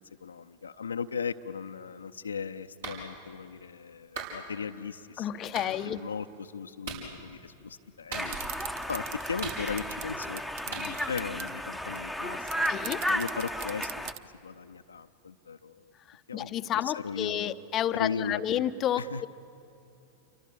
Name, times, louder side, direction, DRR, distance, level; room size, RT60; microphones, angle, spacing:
voice 1, 0.0-8.4 8.9-15.9 16.3-16.5 16.8-17.6 17.9-18.6 19.0-19.3, left 6 dB, 75° left, 8 dB, 0.7 m, -37 dB
Clapping, 2.8-3.0 4.2-4.4 5.5-5.7 6.8-7.1 8.1-8.6 9.4-10.0 10.7-10.9, right 5 dB, 60° right, 6.3 m, -38 dB
voice 2, 5.2-6.0 12.7-13.0 16.1-19.3, left 10 dB, 30° left, 13 dB, 0.8 m, -31 dB
Conversation, 8.1-14.1, equal, ahead, 1.1 m, -34 dB
sound 1, 8.3-11.5 12.0-12.1 12.3-14.2, right 11 dB, 45° right, 0.9 m, -40 dB
29.0 x 24.0 x 8.6 m, 2.7 s
figure-of-eight pair, 90°, 0 cm